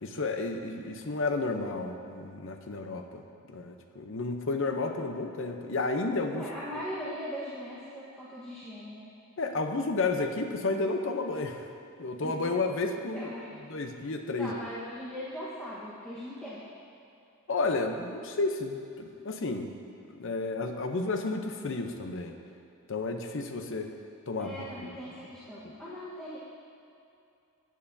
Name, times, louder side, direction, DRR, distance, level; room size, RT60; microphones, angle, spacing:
voice 1, 0.0-6.4 9.4-11.7 12.0-13.3 13.7-14.5 17.5-19.8 20.2-22.4 22.9-23.9 24.3-25.3 25.6-25.7, left 3 dB, 65° left, 5 dB, 0.7 m, -32 dB
voice 2, 6.3-9.1 12.2-12.4 13.1-13.6 14.4-16.6 24.4-26.4, equal, 5° left, -10 dB, 1.2 m, -40 dB
15.5 x 9.3 x 2.7 m, 2.6 s
head